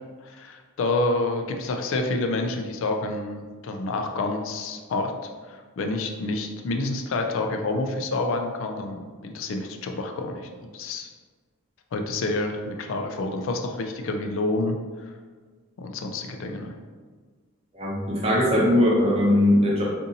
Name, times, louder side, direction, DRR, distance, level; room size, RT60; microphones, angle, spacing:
voice 1, 0.2-5.1 5.5-11.1 11.9-14.8 15.8-16.7, left 2 dB, 65° left, 4 dB, 0.3 m, -28 dB
voice 2, 17.7-19.8, left 1 dB, 30° right, -5 dB, 0.7 m, -20 dB
2.6 x 2.6 x 3.9 m, 1.5 s
head